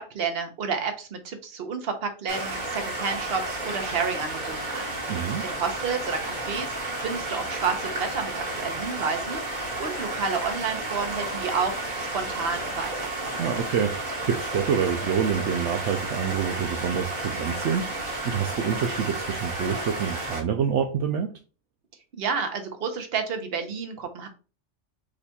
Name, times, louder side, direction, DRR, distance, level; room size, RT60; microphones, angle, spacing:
voice 1, 0.0-4.9 5.4-12.9 22.2-24.3, right 5 dB, 55° right, 6 dB, 1.0 m, -30 dB
sound 1, 2.3-20.4, right 2 dB, 40° right, 1.5 m, -32 dB
voice 2, 5.1-5.4 13.4-17.9 18.2-21.3, right 7 dB, 75° right, 5 dB, 0.9 m, -27 dB
5.2 x 4.2 x 2.3 m, 0.34 s
omnidirectional pair, 1.3 m